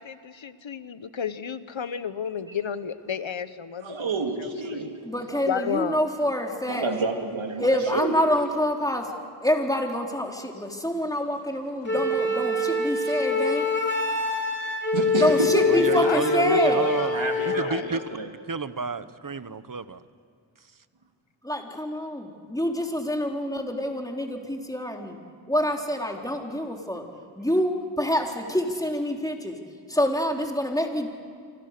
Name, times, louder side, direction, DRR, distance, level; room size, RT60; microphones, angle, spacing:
voice 1, 0.0-3.9 4.4-5.0 5.4-6.1 16.0-17.9, left 7 dB, 75° left, 1.2 m, -32 dB
voice 2, 3.8-4.9 6.7-8.1 11.3-11.4 12.9-13.2 14.9-16.0 17.1-18.3, right 3 dB, 80° right, 2.8 m, -29 dB
voice 3, 5.0-6.9 7.6-9.1 9.4-13.7 15.2-16.9 21.4-25.2 25.5-27.0 27.4-29.6 29.9-31.1, equal, 10° left, 3.9 m, -26 dB
Wind instrument woodwind instrument, 11.9-17.7, left 2 dB, 25° left, 3.7 m, -25 dB
voice 4, 15.7-17.2 17.4-18.0 18.5-20.0, right 4 dB, 45° right, 1.2 m, -30 dB
28.5 x 25.0 x 6.8 m
cardioid pair, 40°, 46 cm